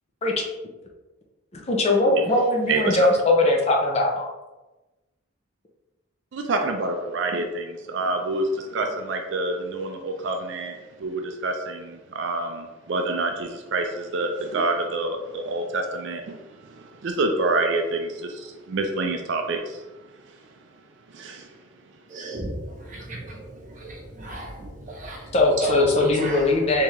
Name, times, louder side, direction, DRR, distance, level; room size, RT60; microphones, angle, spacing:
voice 1, 1.7-4.3 25.3-26.8, left 2 dB, 30° left, 0 dB, 0.5 m, -20 dB
voice 2, 2.7-3.1 6.3-10.7 11.0-16.4 17.0-19.8 21.1-21.4, right 2 dB, 55° right, 4 dB, 0.4 m, -27 dB
voice 3, 22.1-26.8, right 2 dB, 35° right, -1 dB, 0.7 m, -35 dB
3.6 x 2.8 x 3.0 m, 1.1 s
head